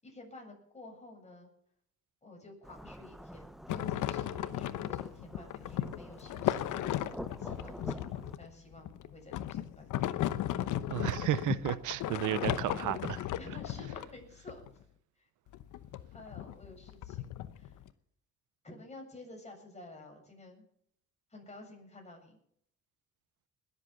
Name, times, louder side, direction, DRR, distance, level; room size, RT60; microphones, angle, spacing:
voice 1, 0.0-1.5 2.2-10.2 13.4-14.6 15.2-15.3 16.1-17.8 18.6-20.7 21.3-22.4, left 2 dB, 20° left, 7.4 m, -52 dB
Thunderstorm / Rain, 2.6-8.4, equal, ahead, 0.7 m, -48 dB
sound 1, 3.7-14.7 15.5-17.9, left 12 dB, 85° left, 0.9 m, -35 dB
voice 2, 10.9-13.3, right 14 dB, 85° right, 0.7 m, -33 dB
20.5 x 8.2 x 6.8 m
cardioid pair, 90°, 30 cm